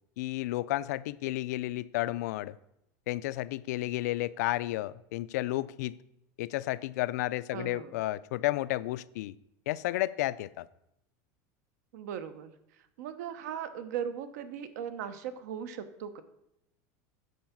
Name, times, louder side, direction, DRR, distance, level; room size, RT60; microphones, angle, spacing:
voice 1, 0.2-2.6 3.1-6.0 6.4-9.3 9.7-10.7, left 16 dB, 80° left, 17 dB, 0.4 m, -32 dB
voice 2, 7.5-8.0 11.9-16.2, right 8 dB, 85° right, 12 dB, 0.9 m, -38 dB
9.3 x 4.8 x 7.2 m, 0.82 s
supercardioid pair, 175°, 9 cm